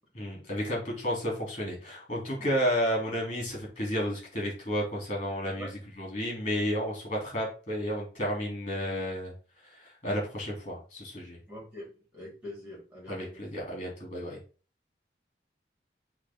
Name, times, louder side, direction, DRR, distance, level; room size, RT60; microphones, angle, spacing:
voice 1, 0.1-5.7 6.0-9.3 9.6-11.4 13.1-14.4, equal, 35° left, -2 dB, 3.1 m, -32 dB
voice 2, 11.5-13.3, left 1 dB, 10° right, -4 dB, 3.7 m, -44 dB
8.0 x 3.4 x 3.7 m, 0.36 s
head